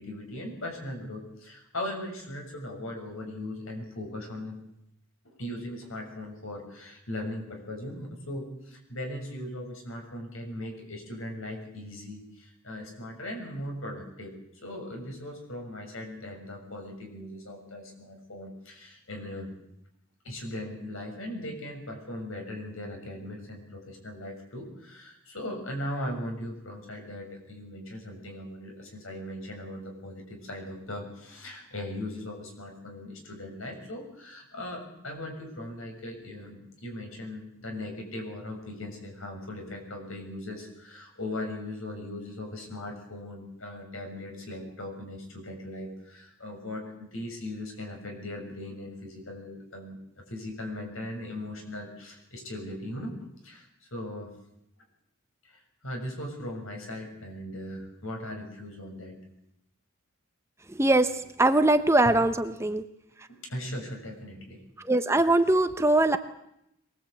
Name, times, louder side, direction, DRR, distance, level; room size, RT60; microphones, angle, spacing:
voice 1, 0.0-4.6 5.2-14.3 14.6-19.5 20.2-54.3 55.4-59.2 62.0-62.2 63.3-64.6, left 1 dB, 75° left, 3 dB, 6.8 m, -39 dB
voice 2, 60.7-61.1 61.4-62.8 64.8-66.2, right 2 dB, 15° right, 9 dB, 0.9 m, -22 dB
23.0 x 19.5 x 8.5 m, 0.81 s
head